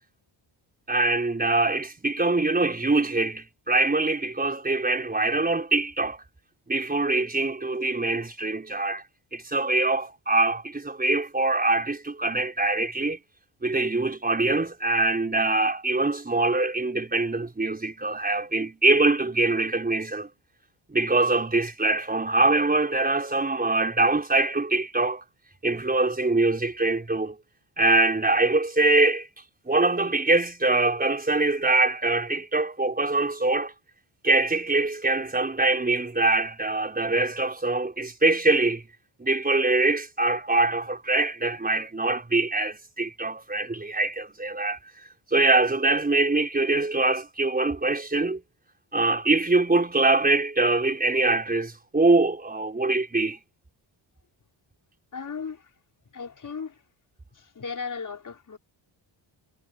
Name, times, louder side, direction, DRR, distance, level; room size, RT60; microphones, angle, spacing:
voice 1, 0.9-6.2 6.7-9.0 9.3-13.2 13.6-20.3 20.9-25.2 25.6-27.4 27.8-29.3 29.6-33.7 34.2-38.8 39.2-44.8 45.3-48.4 48.9-53.4, right 2 dB, 20° right, 5.2 m, -23 dB
voice 2, 55.1-55.6 56.1-56.8 57.3-58.6, left 5 dB, 40° left, 5.1 m, -36 dB
wide cardioid pair, 140°, 48 cm